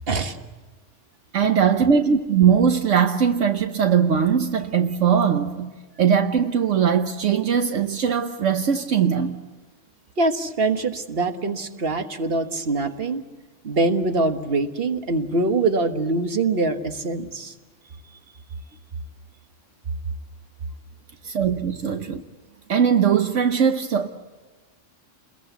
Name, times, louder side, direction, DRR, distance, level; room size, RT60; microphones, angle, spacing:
voice 1, 1.3-5.7 6.0-9.4 21.2-22.2 22.7-24.1, right 7 dB, 75° right, 1.3 m, -20 dB
voice 2, 10.2-13.3 13.6-17.5, right 3 dB, 50° right, 1.7 m, -23 dB
29.0 x 21.5 x 8.1 m
omnidirectional pair, 1.3 m